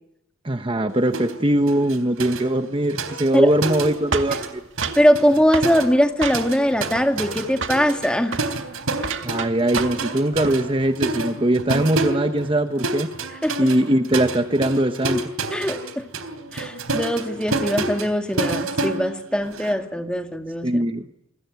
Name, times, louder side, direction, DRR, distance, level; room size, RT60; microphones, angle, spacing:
voice 1, 0.4-4.6 9.2-13.1 13.6-15.3 20.6-21.1, right 1 dB, 25° right, 1.0 m, -21 dB
sound 1, 1.1-1.4 1.7-4.5 4.8-19.7, right 2 dB, 80° right, 3.6 m, -29 dB
sound 2, 4.1-5.1 5.5-5.7 6.2-6.7 6.9-7.4 7.6-7.9 8.2-8.5 9.0-10.1 10.3-10.6, right 4 dB, 60° right, 2.1 m, -29 dB
voice 2, 5.0-8.4 13.4-13.7 15.5-16.1 16.5-20.8, equal, 5° left, 2.2 m, -21 dB
28.0 x 22.0 x 9.4 m
head